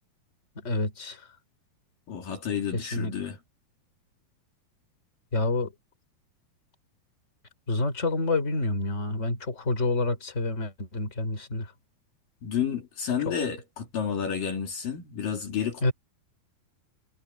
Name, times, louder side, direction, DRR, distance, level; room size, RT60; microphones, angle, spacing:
voice 1, 0.6-1.2 2.7-3.1 5.3-5.7 7.7-11.7 13.2-13.3 15.8-15.9, left 2 dB, 20° left, 4.2 m, -28 dB
voice 2, 2.1-3.4 12.4-15.9, left 8 dB, 60° left, 4.3 m, -30 dB
omnidirectional pair, 4.5 m